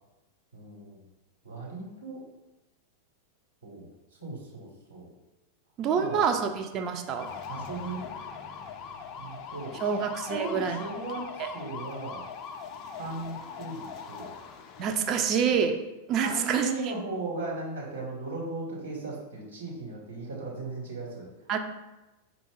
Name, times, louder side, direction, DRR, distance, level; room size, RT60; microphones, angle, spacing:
voice 1, 0.5-1.0 1.4-2.2 3.6-3.9 4.2-5.1 5.9-6.2 7.5-8.0 9.2-10.0 10.3-12.2 12.9-14.3 16.2-21.3, right 3 dB, 75° right, -5 dB, 1.2 m, -37 dB
voice 2, 5.8-7.3 9.8-10.8 11.4-11.5 14.8-15.8 16.1-16.9 21.5-21.6, right 7 dB, 35° right, 6 dB, 0.4 m, -27 dB
sound 1, 7.1-15.6, left 6 dB, 35° left, 0.3 m, -41 dB
4.9 x 2.3 x 3.9 m, 1.0 s
figure-of-eight pair, 90°, 0 cm